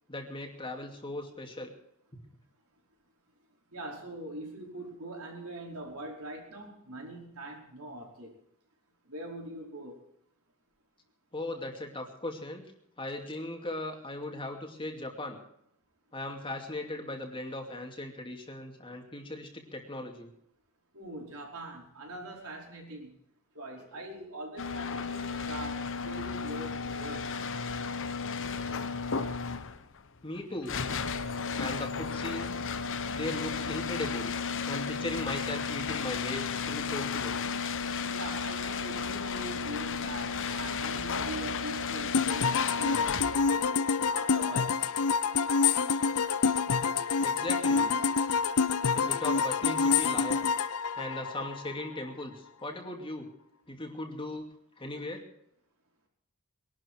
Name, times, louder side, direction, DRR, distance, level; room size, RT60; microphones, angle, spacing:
voice 1, 0.1-1.7 11.3-12.6 13.0-15.4 16.1-20.3 30.2-30.8 31.6-32.5 33.1-34.4 34.7-37.3 47.2-47.9 48.9-50.4 51.0-53.3 53.7-54.5 54.8-55.2, left 1 dB, 25° left, 3 dB, 2.6 m, -38 dB
voice 2, 3.7-8.3 9.1-10.0 20.9-23.1 23.5-27.3 38.1-43.7 44.1-44.9, right 1 dB, 70° right, 0 dB, 5.1 m, -42 dB
sound 1, 24.6-43.6, left 5 dB, 60° left, 1.1 m, -34 dB
sound 2, 42.1-51.9, left 5 dB, 75° left, 0.7 m, -27 dB
22.0 x 12.0 x 4.6 m, 0.72 s
head